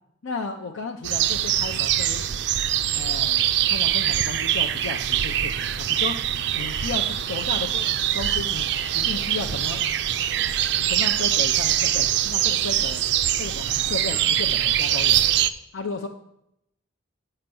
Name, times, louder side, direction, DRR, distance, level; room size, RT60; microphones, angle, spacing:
voice 1, 0.2-2.4 2.9-6.2 6.5-9.8 10.9-13.0 13.4-15.3 15.7-16.1, left 4 dB, 75° left, 2 dB, 0.6 m, -34 dB
sound 1, 1.0-15.5, right 11 dB, 60° right, 0.4 m, -23 dB
7.8 x 5.8 x 7.6 m, 0.79 s
head